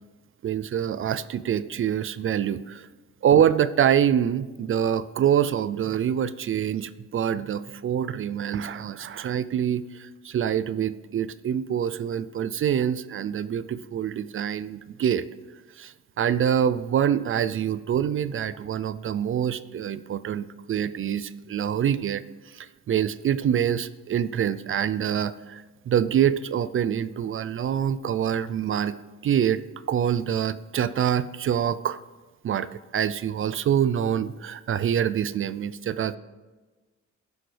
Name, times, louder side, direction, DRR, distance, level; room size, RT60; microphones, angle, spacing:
voice 1, 0.4-2.9 3.2-15.2 15.8-28.9 29.2-29.6 29.9-32.0 32.4-36.2, right 9 dB, 45° right, 15 dB, 0.4 m, -25 dB
14.5 x 6.3 x 3.3 m, 1.3 s
cardioid pair, 90°, 30 cm